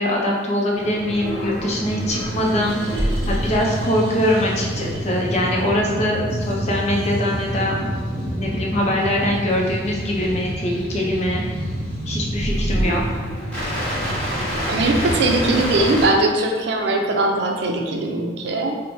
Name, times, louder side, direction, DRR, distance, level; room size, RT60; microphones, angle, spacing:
voice 1, 0.0-11.4 12.1-13.2, left 1 dB, 40° left, -2 dB, 0.6 m, -23 dB
sound 1, 0.8-16.1, equal, 10° left, 1.3 m, -26 dB
voice 2, 14.7-18.8, right 2 dB, 65° right, 2 dB, 0.5 m, -20 dB
4.5 x 2.1 x 2.7 m, 1.5 s
head